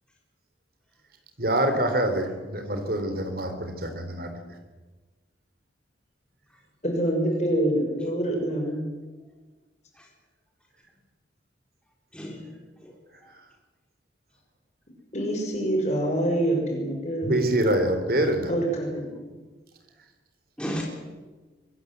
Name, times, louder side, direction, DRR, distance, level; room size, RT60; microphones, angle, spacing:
voice 1, 1.4-4.3 17.2-18.5, right 1 dB, 50° right, 7 dB, 3.8 m, -25 dB
voice 2, 6.8-8.9 15.1-17.4 18.5-19.1, right 1 dB, 35° left, 1 dB, 6.5 m, -26 dB
voice 3, 8.4-8.7 9.9-10.1 12.1-12.5 12.8-13.3 20.6-20.8, equal, 5° left, -1 dB, 3.7 m, -37 dB
24.0 x 20.5 x 8.2 m, 1.3 s
head